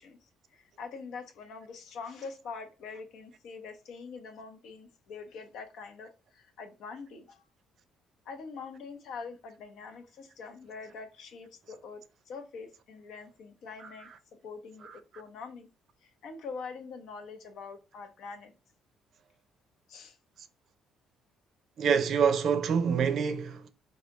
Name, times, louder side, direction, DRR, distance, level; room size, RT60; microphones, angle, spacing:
voice 1, 0.0-7.5 8.3-14.1 14.4-14.9 15.2-15.7 16.0-18.5 19.9-20.2, left 5 dB, 70° left, 0.8 m, -44 dB
voice 2, 21.8-23.7, right 6 dB, 55° right, 0.5 m, -26 dB
4.7 x 2.3 x 2.9 m
cardioid pair, 140°, 0 cm